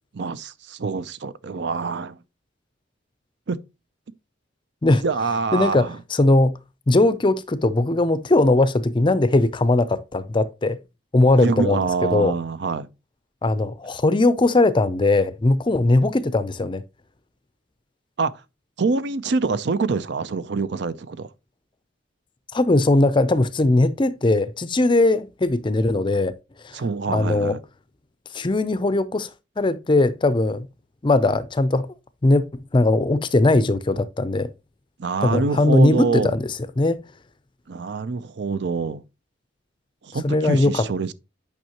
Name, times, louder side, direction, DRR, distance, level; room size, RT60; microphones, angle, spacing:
voice 1, 0.1-2.2 3.5-3.6 5.0-6.0 11.4-12.9 18.2-18.3 18.8-21.3 26.7-27.6 35.0-36.3 37.7-39.0 40.0-41.1, right 4 dB, 60° right, 0.5 m, -25 dB
voice 2, 5.5-6.5 6.9-10.8 11.1-12.3 13.4-16.8 22.5-26.3 26.6-26.8 27.1-27.6 28.3-29.3 29.6-30.7 31.0-31.9 32.2-34.5 35.2-37.0 40.2-40.9, left 2 dB, 25° left, 0.5 m, -19 dB
9.2 x 5.4 x 2.9 m
head